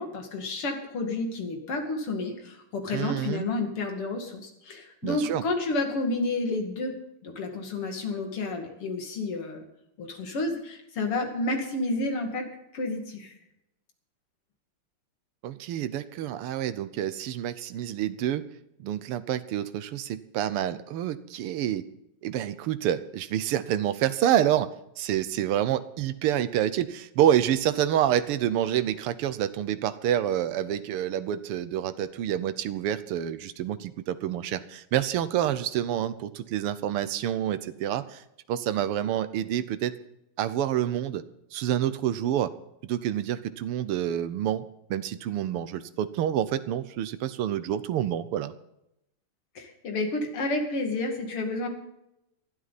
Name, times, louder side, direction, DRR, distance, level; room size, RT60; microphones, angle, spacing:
voice 1, 0.0-6.9 7.2-9.6 10.0-12.5 12.7-13.3 49.5-51.7, left 2 dB, 90° left, 3 dB, 3.2 m, -30 dB
voice 2, 2.9-3.5 5.0-5.4 15.4-18.4 18.8-21.9 22.2-38.2 38.5-39.9 40.4-41.2 41.5-42.5 42.8-44.6 44.9-48.5, right 11 dB, 85° right, 13 dB, 1.7 m, -28 dB
19.0 x 12.5 x 4.2 m, 0.83 s
omnidirectional pair, 2.4 m